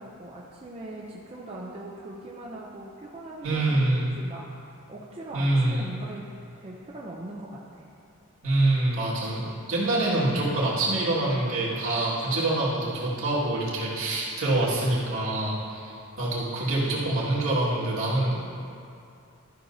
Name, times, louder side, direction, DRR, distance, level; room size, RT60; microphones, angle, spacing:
voice 1, 0.0-3.9 4.2-6.2 6.6-7.9, right 1 dB, 25° right, -4 dB, 0.6 m, -41 dB
voice 2, 3.4-4.1 5.3-5.9 8.4-18.5, right 2 dB, 65° right, -7 dB, 2.0 m, -25 dB
13.0 x 6.2 x 2.7 m, 2.5 s
head